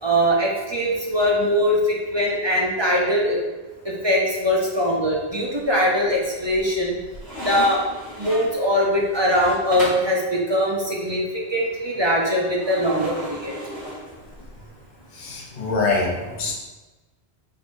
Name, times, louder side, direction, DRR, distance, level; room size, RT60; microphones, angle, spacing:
voice 1, 0.0-3.4 3.8-6.9 7.4-7.8 8.2-11.2 11.5-13.5, equal, 30° right, -3 dB, 0.6 m, -21 dB
sound 1, 5.5-6.1 6.5-10.2 12.6-14.7, left 1 dB, 65° left, 1.6 m, -35 dB
voice 2, 15.1-16.5, left 3 dB, 45° left, -2 dB, 0.8 m, -24 dB
4.5 x 3.7 x 2.6 m, 1.2 s
omnidirectional pair, 1.1 m